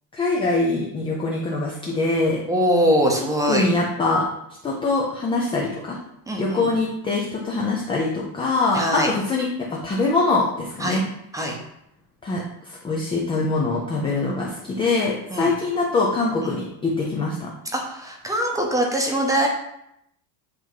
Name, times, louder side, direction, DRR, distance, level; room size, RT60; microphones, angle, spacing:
voice 1, 0.1-2.4 3.4-4.2 4.6-6.0 6.4-9.5 9.7-11.0 12.2-17.5, left 3 dB, 10° left, -3 dB, 0.3 m, -23 dB
voice 2, 2.5-3.7 6.3-6.7 8.7-9.1 10.8-11.0 11.3-11.6 15.3-15.5 16.4-16.6 17.7-19.5, equal, 5° right, 1 dB, 0.7 m, -22 dB
8.0 x 2.9 x 4.6 m, 0.78 s
cardioid pair, 155°, 49 cm